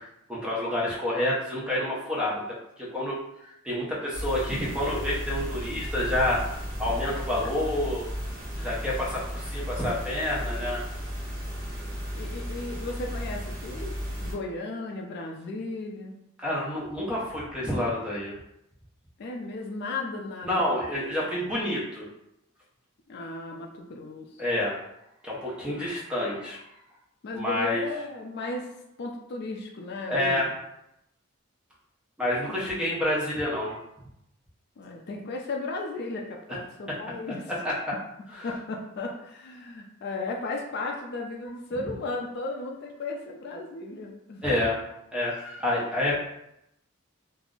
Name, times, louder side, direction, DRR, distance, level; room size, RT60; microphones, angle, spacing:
voice 1, 0.0-6.4 6.8-8.1 8.6-10.8 16.4-18.3 20.4-22.1 24.4-24.8 25.2-26.6 27.3-27.8 30.1-30.5 32.2-33.8 36.9-37.0 37.5-38.0 38.3-38.5 44.4-44.8 45.1-46.1, left 1 dB, 5° right, -5 dB, 0.6 m, -28 dB
sound 1, 4.1-14.3, equal, 45° right, 0.8 m, -34 dB
voice 2, 12.1-16.2 19.2-20.8 23.1-24.4 25.7-25.9 27.2-28.7 29.0-30.5 32.5-32.9 34.8-37.5 38.4-44.4, left 3 dB, 50° left, 1 dB, 0.3 m, -35 dB
2.4 x 2.0 x 3.6 m, 0.82 s
head